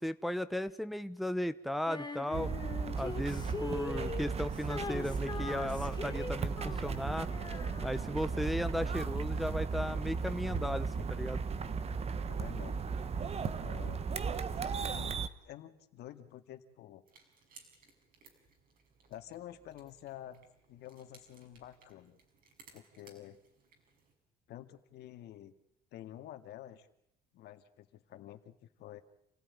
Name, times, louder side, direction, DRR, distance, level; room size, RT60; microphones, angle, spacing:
voice 1, 0.0-2.5 3.0-7.3 7.8-11.4, left 1 dB, ahead, 11 dB, 0.9 m, -36 dB
Female singing, 1.9-8.3, left 4 dB, 25° left, 1.7 m, -42 dB
sound 1, 2.3-15.3, right 5 dB, 40° right, 1.3 m, -36 dB
voice 2, 12.3-12.8 13.6-14.0 14.9-17.0 19.1-22.2 22.7-23.4 24.5-25.5 25.9-26.9 27.3-29.0, left 12 dB, 75° left, 8 dB, 2.1 m, -49 dB
sound 2, 17.1-24.1, right 4 dB, 55° right, 6.3 m, -62 dB
28.5 x 16.0 x 9.8 m, 0.76 s
cardioid pair, 110°, 17 cm